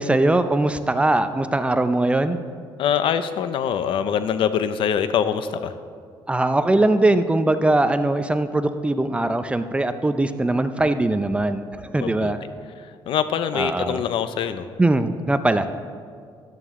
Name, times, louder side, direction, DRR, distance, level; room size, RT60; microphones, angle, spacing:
voice 1, 0.0-2.4 6.3-12.4 13.5-14.0 14.8-15.7, right 2 dB, 10° right, 10 dB, 0.5 m, -21 dB
voice 2, 2.8-5.7 11.9-12.3 12.8-14.7, left 8 dB, 70° left, 12 dB, 0.6 m, -24 dB
13.5 x 11.0 x 3.7 m, 2.1 s
cardioid pair, 110°, 9 cm